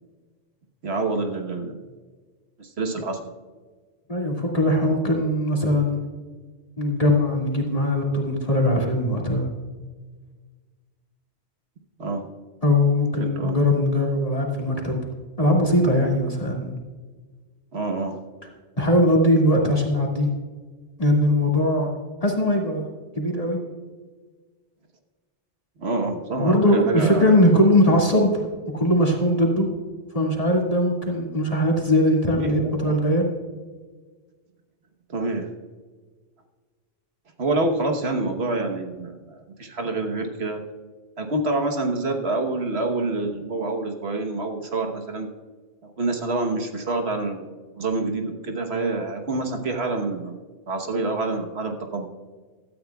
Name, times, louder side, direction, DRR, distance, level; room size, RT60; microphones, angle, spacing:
voice 1, 0.8-1.8 2.6-3.3 12.0-12.2 13.2-13.6 17.7-18.2 22.3-22.5 25.8-27.4 32.3-32.6 32.9-33.0 35.1-35.5 37.4-40.6 41.2-45.3 46.0-50.4 50.7-52.1, right 2 dB, 65° right, 4 dB, 1.4 m, -27 dB
voice 2, 4.1-6.0 6.8-9.5 12.6-15.0 15.4-16.8 18.8-20.3 21.0-21.9 22.2-22.9 23.2-23.6 26.4-28.5 28.7-29.7 30.1-33.2, left 1 dB, 30° left, -2 dB, 2.2 m, -20 dB
17.0 x 13.0 x 2.3 m, 1.4 s
omnidirectional pair, 1.2 m